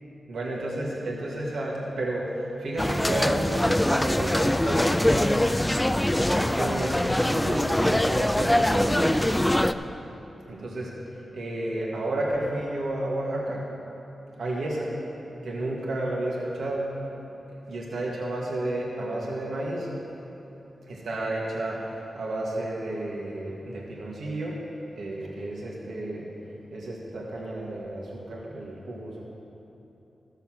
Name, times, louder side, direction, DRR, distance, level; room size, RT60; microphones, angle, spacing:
voice 1, 0.3-5.4 6.2-9.6 10.5-10.9 11.3-13.7 14.4-14.9 15.4-16.9 17.7-19.9 20.9-24.6 24.9-26.3 26.7-29.2, right 1 dB, 80° right, -3 dB, 1.8 m, -31 dB
sound 1, 2.8-9.7, left 1 dB, 10° left, 0.4 m, -23 dB
13.5 x 6.8 x 6.1 m, 3.0 s
cardioid pair, 55°, 0 cm